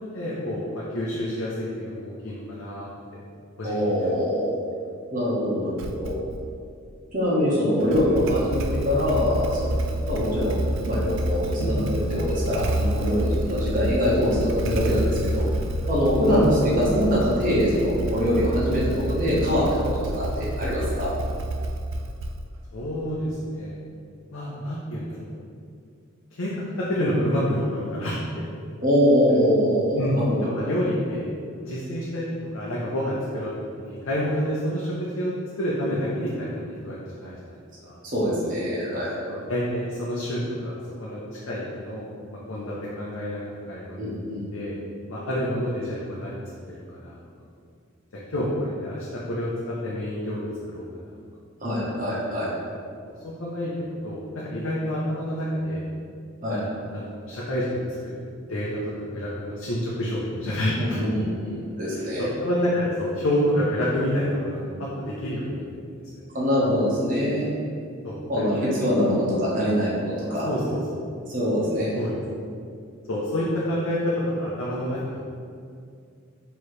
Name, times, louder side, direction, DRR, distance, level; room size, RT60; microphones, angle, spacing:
voice 1, 0.0-3.2 3.6-4.1 11.6-11.9 16.2-16.4 22.7-23.8 24.3-25.3 26.3-28.2 30.0-30.2 30.5-31.3 31.6-33.5 33.8-37.6 37.8-38.0 39.3-42.1 42.5-44.2 44.5-44.8 45.1-47.2 48.3-50.8 53.2-53.7 54.0-55.8 56.5-58.2 58.5-61.1 61.9-66.2 68.0-68.2 68.5-69.2 70.3-71.0 72.0-72.2 73.1-75.2, equal, 85° left, -6 dB, 0.6 m, -29 dB
voice 2, 3.6-4.5 5.1-6.2 7.1-9.8 10.1-10.5 10.9-15.5 15.9-21.1 28.8-30.7 38.0-39.1 44.0-44.5 51.6-52.5 56.4-56.6 60.8-62.2 66.3-67.5 68.3-70.5 71.3-71.9, equal, 40° right, -7 dB, 1.1 m, -23 dB
Motorcycle / Engine starting, 5.8-6.5 7.8-22.7, right 1 dB, 65° right, 0.3 m, -28 dB
4.7 x 3.1 x 3.1 m, 2.3 s
head